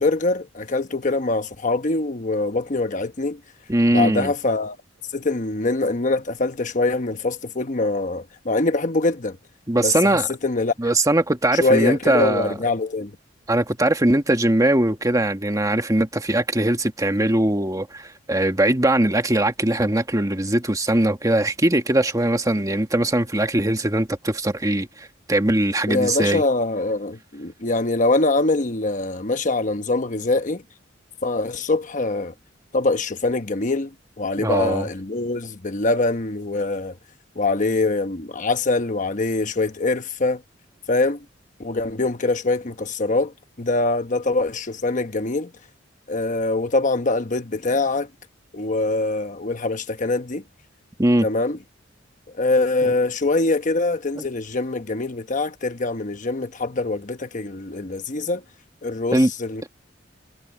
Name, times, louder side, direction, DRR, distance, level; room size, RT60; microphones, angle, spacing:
voice 1, 0.0-3.4 3.9-4.8 5.1-9.4 9.8-10.7 11.6-13.1 25.9-30.6 31.2-32.3 32.7-37.0 37.4-40.4 40.9-41.2 41.6-45.5 46.1-48.1 48.5-50.4 51.2-51.6 52.4-58.4 58.8-59.7, left 2 dB, 40° left, 1.1 m, -23 dB
voice 2, 3.7-4.3 9.7-10.3 10.8-12.5 13.5-26.4 34.4-34.9 51.0-51.3 52.8-52.9 54.2-54.3 59.1-59.3, right 1 dB, 20° right, 1.7 m, -21 dB
head